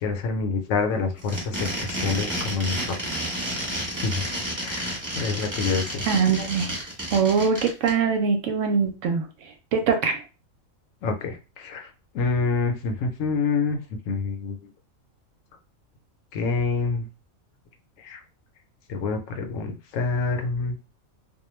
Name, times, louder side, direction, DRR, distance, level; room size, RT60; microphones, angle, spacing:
voice 1, 0.0-2.8 3.9-4.2 4.6-6.1 11.0-11.9 12.1-14.6 16.3-17.1 18.0-18.2 18.9-20.7, left 4 dB, 75° left, 5 dB, 0.9 m, -27 dB
sound 1, 1.2-7.9, right 1 dB, 15° right, 0.9 m, -30 dB
voice 2, 6.1-6.8 7.1-9.3 9.7-10.2, right 6 dB, 70° right, 4 dB, 0.9 m, -22 dB
2.3 x 2.2 x 3.0 m, 0.32 s
omnidirectional pair, 1.4 m